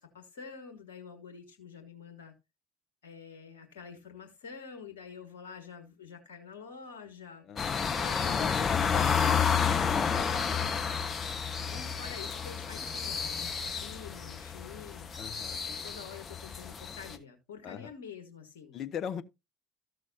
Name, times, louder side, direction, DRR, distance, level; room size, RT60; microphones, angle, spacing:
voice 1, 0.0-2.3 3.0-7.4 7.8-8.9 10.2-10.9 11.7-15.1 15.6-18.8, left 6 dB, 75° left, 1.5 m, -47 dB
voice 2, 7.4-8.0 8.3-9.8 10.1-10.8 15.2-15.7 17.6-17.9 18.7-19.2, left 8 dB, 50° left, 1.0 m, -40 dB
sound 1, 7.6-17.2, left 6 dB, 35° left, 1.4 m, -31 dB
14.0 x 6.2 x 2.8 m
hypercardioid pair, 65°, 0 cm